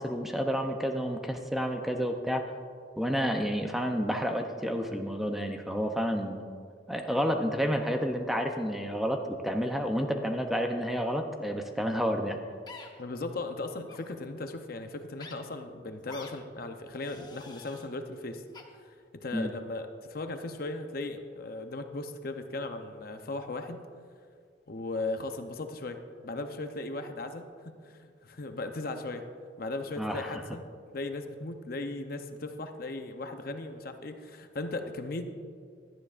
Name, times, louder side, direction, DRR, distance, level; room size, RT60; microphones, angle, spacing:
voice 1, 0.0-2.5 3.0-6.4 6.9-12.4 19.3-19.5 30.0-30.3, equal, ahead, 4 dB, 0.6 m, -30 dB
sound 1, 12.7-12.9 13.8-14.0 15.2-15.3 16.1-16.3 17.0-17.9 18.5-18.6, left 4 dB, 25° left, 0.9 m, -47 dB
voice 2, 13.0-18.4 18.8-19.0 19.2-23.8 24.7-29.3 29.6-30.7 30.9-35.2, left 2 dB, 50° left, 6 dB, 0.7 m, -37 dB
17.0 x 12.0 x 2.5 m, 2.1 s
head